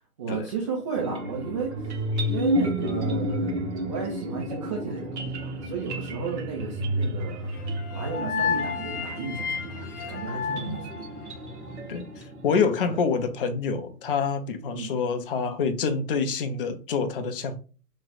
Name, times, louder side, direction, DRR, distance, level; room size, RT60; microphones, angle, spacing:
voice 1, 0.2-2.0 2.3-3.5 3.8-11.1 12.8-13.0 14.6-14.9, right 5 dB, 20° right, 0.4 m, -34 dB
sound 1, 0.9-13.1, equal, 50° right, 0.9 m, -31 dB
sound 2, 7.5-11.7, left 6 dB, 80° left, 0.9 m, -32 dB
voice 2, 10.5-10.8 11.9-17.6, left 5 dB, 40° left, 0.5 m, -27 dB
3.0 x 2.2 x 3.8 m
hypercardioid pair, 130°, 45 cm